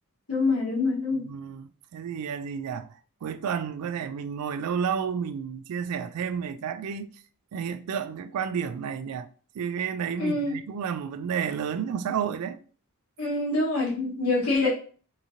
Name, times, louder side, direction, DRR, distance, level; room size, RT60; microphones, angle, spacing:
voice 1, 0.3-1.2 10.2-10.5 13.2-14.7, left 2 dB, 75° left, 1.4 m, -25 dB
voice 2, 1.2-2.9 3.2-7.2 7.5-9.3 9.6-12.6, right 7 dB, 85° right, 0.3 m, -31 dB
3.7 x 2.9 x 2.6 m
head